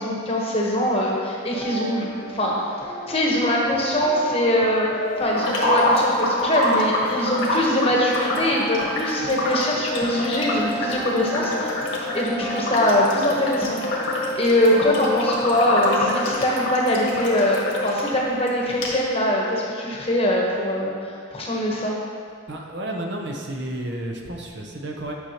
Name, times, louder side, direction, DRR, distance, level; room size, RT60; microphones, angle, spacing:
voice 1, 0.0-2.6 3.1-4.9 5.2-11.8 12.1-13.8 14.1-20.9 21.3-21.9, left 1 dB, 30° left, -3 dB, 1.0 m, -22 dB
sound 1, 1.5-16.3, equal, 5° left, 1.2 m, -33 dB
sound 2, 5.3-18.1 18.5-18.6 18.8-18.9, left 1 dB, 85° left, 1.4 m, -26 dB
voice 2, 22.5-25.1, right 1 dB, 55° right, 1 dB, 0.7 m, -31 dB
9.4 x 6.3 x 2.9 m, 2.2 s
head